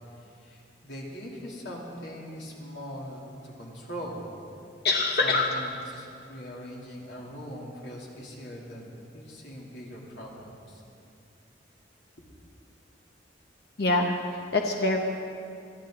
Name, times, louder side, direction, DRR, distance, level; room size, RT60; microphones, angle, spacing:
voice 1, 0.1-4.3 5.2-10.8, equal, 80° left, -4 dB, 3.1 m, -41 dB
voice 2, 4.8-5.4 13.8-15.0, left 3 dB, 60° left, 1 dB, 1.0 m, -25 dB
21.5 x 13.5 x 3.9 m, 2.5 s
head